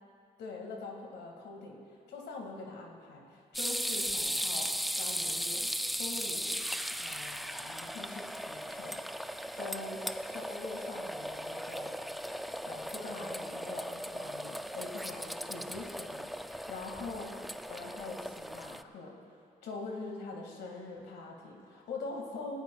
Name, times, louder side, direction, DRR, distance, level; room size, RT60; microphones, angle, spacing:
voice 1, 0.4-5.7 5.9-6.6 7.0-9.2 9.5-11.9 12.3-17.3 17.7-22.6, left 3 dB, 85° left, 0 dB, 2.1 m, -44 dB
sound 1, 3.5-18.8, equal, ahead, 0.4 m, -37 dB
19.0 x 15.0 x 2.4 m, 2.3 s
cardioid pair, 70°, 17 cm